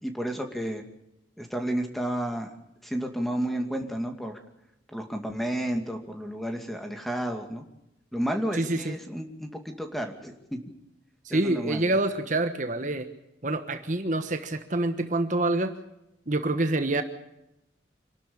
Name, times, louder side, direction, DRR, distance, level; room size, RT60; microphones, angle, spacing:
voice 1, 0.0-0.8 1.4-2.5 2.8-4.4 4.9-7.6 8.1-10.6 11.3-11.9, right 1 dB, ahead, 4 dB, 2.3 m, -31 dB
voice 2, 8.5-9.0 11.2-13.1 13.4-15.7 16.3-17.0, right 2 dB, 45° right, 8 dB, 1.3 m, -26 dB
26.5 x 12.5 x 8.6 m, 0.85 s
head